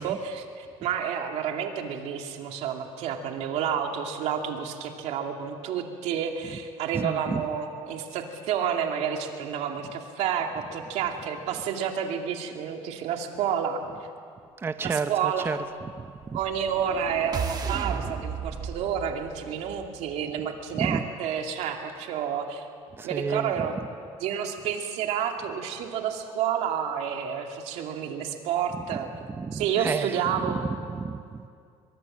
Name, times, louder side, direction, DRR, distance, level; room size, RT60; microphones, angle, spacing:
voice 1, 0.0-13.8 14.8-15.5 16.3-22.7 23.0-23.8 24.2-29.1 29.5-30.6, right 8 dB, 75° right, 3 dB, 2.5 m, -30 dB
voice 2, 6.9-7.4 14.6-15.6 16.0-16.4 20.7-21.0 22.9-23.5 28.8-28.9 29.3-31.5, right 5 dB, 20° right, 11 dB, 0.7 m, -31 dB
sound 1, 16.2-20.4, right 6 dB, 35° right, 1.4 m, -35 dB
23.0 x 23.0 x 7.5 m, 2.3 s
cardioid pair, 130°, 12 cm